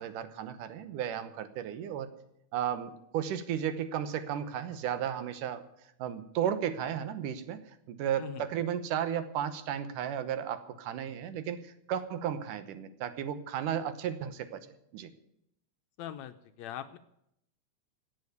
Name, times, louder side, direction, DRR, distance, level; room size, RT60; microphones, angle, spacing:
voice 1, 0.0-2.1 2.5-5.6 6.0-7.6 7.9-14.7 14.9-15.1, right 9 dB, 85° right, 11 dB, 2.6 m, -34 dB
voice 2, 16.0-17.0, left 10 dB, 75° left, 9 dB, 1.7 m, -41 dB
17.0 x 7.0 x 9.4 m, 0.77 s
omnidirectional pair, 3.6 m